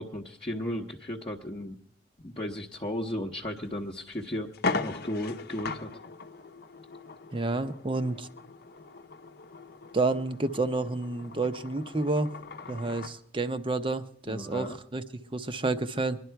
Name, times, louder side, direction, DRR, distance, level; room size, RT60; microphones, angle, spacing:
voice 1, 0.0-1.8 2.2-4.5 4.8-5.9 14.3-14.8, left 1 dB, 30° left, -2 dB, 0.9 m, -35 dB
sound 1, 3.6-3.7 4.1-4.2 4.5-13.2, left 3 dB, 60° left, 0.8 m, -38 dB
voice 2, 7.3-8.3 9.9-12.3 12.7-16.2, right 3 dB, 30° right, 11 dB, 0.7 m, -30 dB
22.0 x 11.0 x 4.6 m, 0.65 s
head